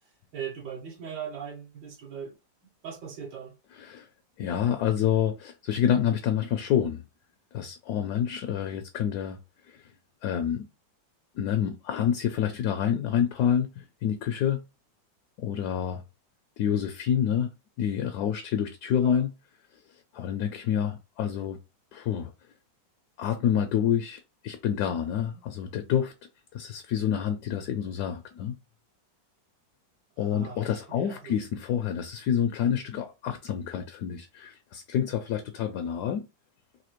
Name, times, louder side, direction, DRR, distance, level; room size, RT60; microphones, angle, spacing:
voice 1, 0.3-2.3 2.8-3.5 19.0-19.2 30.2-31.4, right 7 dB, 85° right, 2.0 m, -39 dB
voice 2, 3.8-4.1 4.4-7.0 7.5-9.4 9.7-9.8 10.2-10.7 11.4-14.6 15.4-16.0 16.6-17.5 17.8-19.3 20.1-21.6 21.9-22.3 23.2-26.1 26.5-28.6 30.2-36.3, left 9 dB, 70° left, 1.0 m, -28 dB
4.1 x 2.6 x 3.0 m
omnidirectional pair, 2.0 m